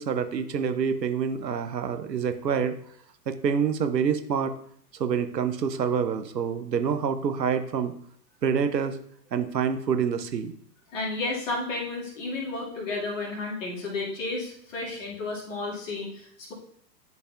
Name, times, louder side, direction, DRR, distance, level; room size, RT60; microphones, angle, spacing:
voice 1, 0.0-2.8 3.3-4.5 4.9-7.9 8.4-9.0 9.3-10.5, right 7 dB, 75° right, 9 dB, 0.7 m, -27 dB
voice 2, 10.9-16.5, left 3 dB, 50° left, -2 dB, 2.1 m, -32 dB
10.5 x 4.1 x 2.3 m, 0.63 s
figure-of-eight pair, 105°, 50 cm